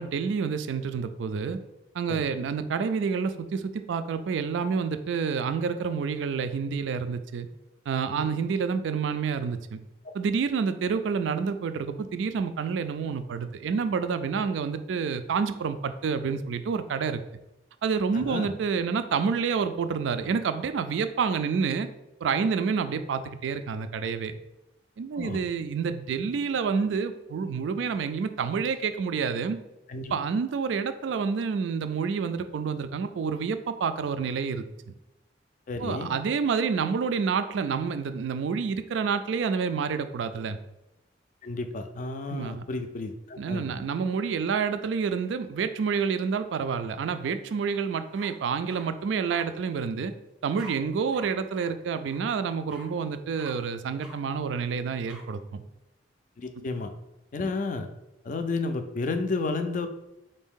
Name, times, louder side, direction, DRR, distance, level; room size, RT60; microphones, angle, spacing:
voice 1, 0.0-1.6 1.9-7.5 7.9-9.8 10.1-17.2 17.8-21.9 22.2-24.4 25.0-29.6 30.1-34.9 35.8-40.6 42.3-42.6 43.4-50.1 50.4-55.6 56.6-56.7, right 5 dB, 75° right, 11 dB, 0.3 m, -28 dB
voice 2, 18.1-18.5 25.2-25.4 29.9-30.1 35.7-36.1 41.4-43.8 56.4-56.9 57.3-57.9 58.2-59.9, left 3 dB, 45° left, 8 dB, 0.3 m, -32 dB
sound 1, 47.7-47.8 48.1-48.9 49.3-49.4 50.6-50.7 51.1-51.3 51.5-51.7 52.1-52.2 52.7-52.9 53.4-53.5 54.0-54.2 55.1-55.2, equal, 5° right, 0.6 m, -46 dB
4.2 x 2.6 x 3.6 m, 0.95 s
head